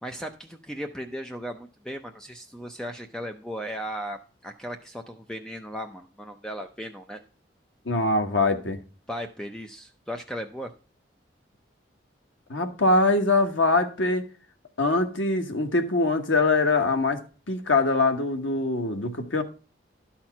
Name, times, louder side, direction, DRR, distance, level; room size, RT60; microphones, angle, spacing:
voice 1, 0.0-7.2 9.1-10.7, equal, 5° left, 0.5 m, -36 dB
voice 2, 7.8-8.8 12.5-14.2 14.8-17.2 17.5-19.4, left 2 dB, 85° left, 1.3 m, -23 dB
12.0 x 4.4 x 5.8 m
head